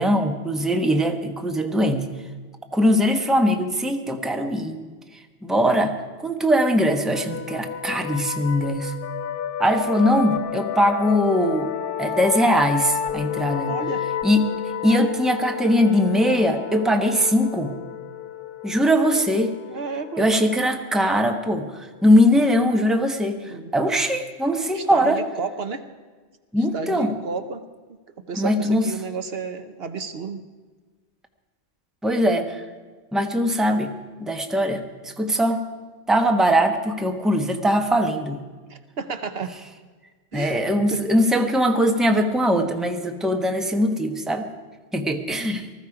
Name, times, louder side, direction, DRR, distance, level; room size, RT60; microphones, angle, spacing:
voice 1, 0.0-2.1 2.7-4.8 5.4-6.0 6.2-8.9 9.6-11.7 12.0-13.8 14.2-14.5 14.8-17.8 18.6-19.6 20.2-25.2 26.5-27.2 28.3-28.9 32.0-32.6 33.1-33.9 34.2-35.7 36.1-38.4 40.3-44.5 44.9-45.7, equal, ahead, 4 dB, 1.0 m, -21 dB
sound 1, 7.1-22.5, left 9 dB, 60° left, 0.8 m, -31 dB
voice 2, 13.7-14.0 19.7-20.3 23.4-23.7 24.7-25.9 26.7-27.6 28.2-30.4 38.7-39.6 40.3-40.6 40.9-41.0, right 5 dB, 65° right, 9 dB, 1.0 m, -31 dB
19.5 x 14.0 x 4.9 m, 1.4 s
omnidirectional pair, 1.1 m